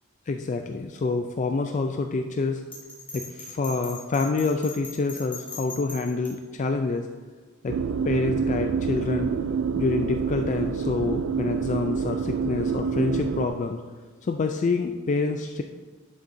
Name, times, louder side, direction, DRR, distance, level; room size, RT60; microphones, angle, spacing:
voice 1, 0.3-2.6 3.1-7.1 7.6-7.8 8.1-9.3 9.8-13.8 14.2-15.6, left 3 dB, 35° left, 5 dB, 0.3 m, -27 dB
Bell, 2.7-6.3, left 3 dB, 10° left, 2.0 m, -39 dB
sound 1, 7.7-13.5, right 6 dB, 65° right, 0.3 m, -27 dB
11.0 x 6.5 x 2.6 m, 1.4 s
head